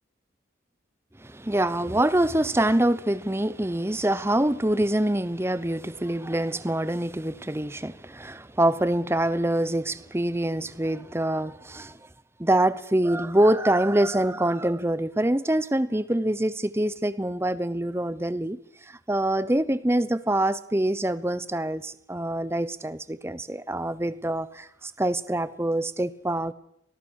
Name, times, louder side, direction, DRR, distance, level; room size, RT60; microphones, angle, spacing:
voice 1, 1.2-12.0 12.4-26.5, right 1 dB, 15° right, 0.8 m, -25 dB
25.0 x 19.0 x 6.5 m
head